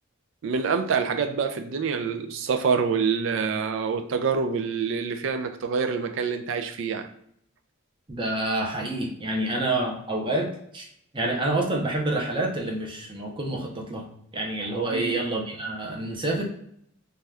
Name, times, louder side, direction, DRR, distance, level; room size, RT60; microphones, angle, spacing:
voice 1, 0.4-7.1 14.9-15.2, right 5 dB, 65° right, 6 dB, 0.4 m, -26 dB
voice 2, 8.1-10.9 11.1-14.1 14.3-16.4, right 2 dB, 25° right, -1 dB, 0.6 m, -28 dB
2.7 x 2.3 x 3.3 m, 0.70 s
head